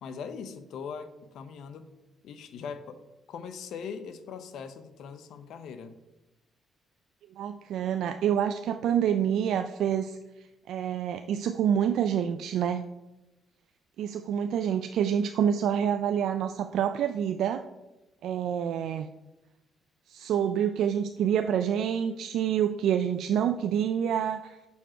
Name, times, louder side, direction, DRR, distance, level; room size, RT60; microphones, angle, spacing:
voice 1, 0.0-1.9 2.2-3.0 3.3-6.0, left 6 dB, 75° left, 10 dB, 0.7 m, -40 dB
voice 2, 7.4-10.2 10.7-12.8 14.0-17.6 18.2-19.1 20.1-24.6, right 9 dB, 80° right, 8 dB, 0.3 m, -27 dB
7.1 x 6.2 x 4.4 m, 1.0 s
cardioid pair, 90°, 0 cm